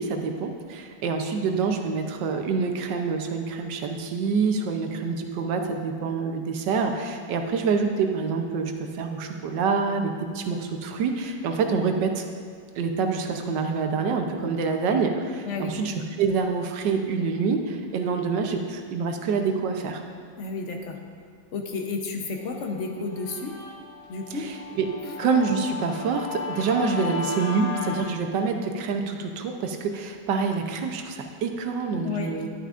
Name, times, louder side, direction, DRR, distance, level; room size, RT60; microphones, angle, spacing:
voice 1, 0.0-12.2 12.8-20.0 24.3-24.9 25.2-32.5, right 5 dB, 80° right, 4 dB, 1.4 m, -26 dB
voice 2, 15.4-15.8 20.4-21.0 21.5-23.6 24.1-24.5 25.0-25.1 32.0-32.5, left 4 dB, 55° left, 3 dB, 0.9 m, -32 dB
Guitar, 22.5-28.0, left 5 dB, 90° left, 2.3 m, -36 dB
11.5 x 9.0 x 2.5 m, 2.1 s
omnidirectional pair, 1.9 m